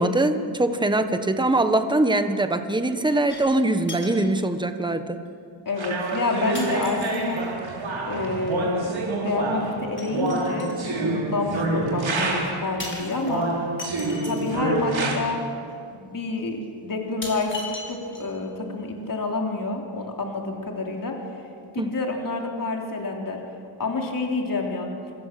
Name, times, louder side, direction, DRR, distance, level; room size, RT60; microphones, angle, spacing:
voice 1, 0.0-5.2 21.8-21.9, right 2 dB, 10° right, 8 dB, 1.2 m, -22 dB
sound 1, 3.3-3.6 3.9-4.3 5.3-5.4 6.5-7.5 10.0-10.9 12.8-14.6 15.7-15.8 16.4-16.5 17.2-18.5 18.8-18.9, left 2 dB, 25° left, 5.5 m, -38 dB
voice 2, 5.7-7.4 8.1-13.5 14.1-15.4 15.9-21.2 21.7-23.4 23.8-24.9, left 3 dB, 40° left, 1 dB, 3.7 m, -28 dB
sound 2, 5.8-12.7 13.2-15.2, right 2 dB, 70° right, 4.7 m, -27 dB
26.5 x 26.5 x 7.7 m, 2.4 s
wide cardioid pair, 160°, 49 cm